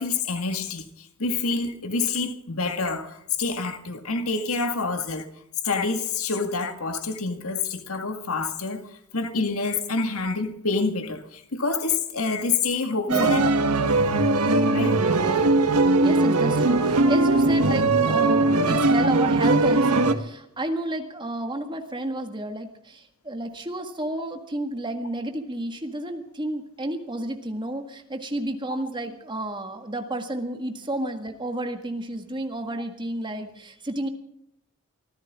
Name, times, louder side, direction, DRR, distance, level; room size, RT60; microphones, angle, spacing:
voice 1, 0.0-5.3 5.6-8.8 9.1-13.5 13.8-13.9 14.7-15.0, left 4 dB, 70° left, 1.9 m, -27 dB
voice 2, 13.1-13.5 16.0-34.1, right 1 dB, 20° right, 1.8 m, -31 dB
sound 1, 13.1-20.1, right 2 dB, 85° right, 1.4 m, -20 dB
24.0 x 15.5 x 3.7 m
head